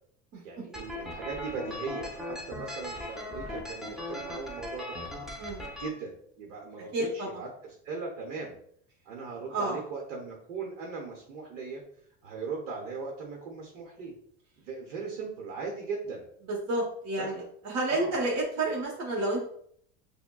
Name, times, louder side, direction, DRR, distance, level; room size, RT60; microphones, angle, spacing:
voice 1, 0.4-5.0 5.6-8.6 9.0-11.8 12.2-14.1 14.6-16.2 17.2-17.3 17.9-18.1, right 4 dB, 85° right, 0 dB, 0.9 m, -38 dB
sound 1, 0.7-5.9, left 1 dB, ahead, 0.6 m, -39 dB
voice 2, 5.4-5.7 6.9-7.3 9.5-9.8 16.5-19.5, right 2 dB, 45° right, -4 dB, 1.1 m, -30 dB
5.6 x 2.2 x 2.2 m, 0.65 s
hypercardioid pair, 95°, 37 cm